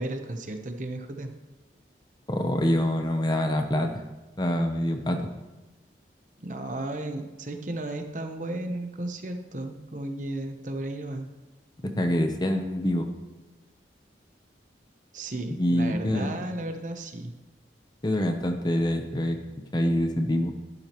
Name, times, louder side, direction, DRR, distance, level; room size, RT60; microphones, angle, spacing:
voice 1, 0.0-1.3 6.4-11.3 15.1-17.3, right 1 dB, 45° right, 5 dB, 0.9 m, -34 dB
voice 2, 2.3-3.9 4.4-5.3 12.0-13.1 15.5-16.3 18.0-19.4 19.7-20.5, left 1 dB, 25° left, 5 dB, 0.8 m, -25 dB
12.5 x 11.5 x 3.1 m, 1.1 s
head